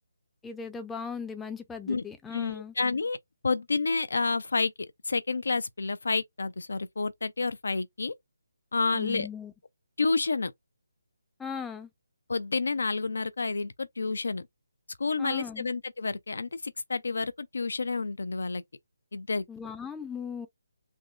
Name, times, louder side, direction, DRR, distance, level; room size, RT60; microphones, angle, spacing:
voice 1, 0.4-2.7 8.9-9.5 11.4-11.9 15.2-15.7 19.5-20.5, left 6 dB, 5° left, 0.5 m, -38 dB
voice 2, 2.3-3.2 3.4-4.7 5.0-8.1 8.7-9.3 10.0-10.5 12.3-14.5 15.0-18.6 19.1-19.4, left 4 dB, 75° left, 0.4 m, -29 dB
3.5 x 2.0 x 2.3 m
figure-of-eight pair, 155°, 0 cm